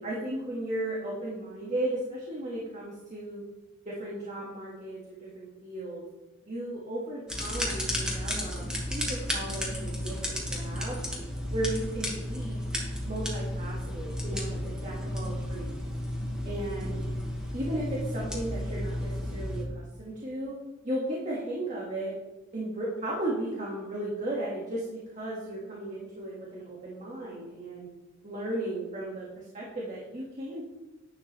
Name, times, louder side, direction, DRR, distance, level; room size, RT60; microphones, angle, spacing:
voice 1, 0.0-3.4 3.9-6.0 6.4-8.6 8.9-11.0 11.5-12.6 13.0-15.8 16.4-17.0 17.5-20.6 20.8-22.1 22.5-27.9 28.2-30.6, right 1 dB, 35° right, -5 dB, 2.0 m, -35 dB
sound 1, 7.3-19.6, left 1 dB, 5° right, 2.0 m, -33 dB
11.0 x 9.7 x 3.4 m, 1.1 s
head